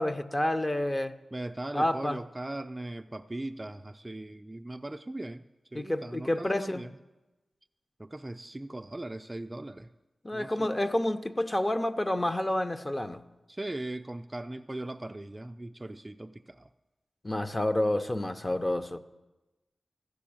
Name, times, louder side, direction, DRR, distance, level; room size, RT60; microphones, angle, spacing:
voice 1, 0.0-1.2 1.7-2.2 5.7-6.9 10.2-13.2 17.2-19.0, left 1 dB, 20° left, 9 dB, 0.6 m, -29 dB
voice 2, 1.3-5.4 5.7-6.9 8.0-9.9 10.3-10.7 13.5-16.7, right 1 dB, 20° right, 9 dB, 0.3 m, -39 dB
14.0 x 6.8 x 8.6 m, 1.1 s
wide cardioid pair, 100°, 0 cm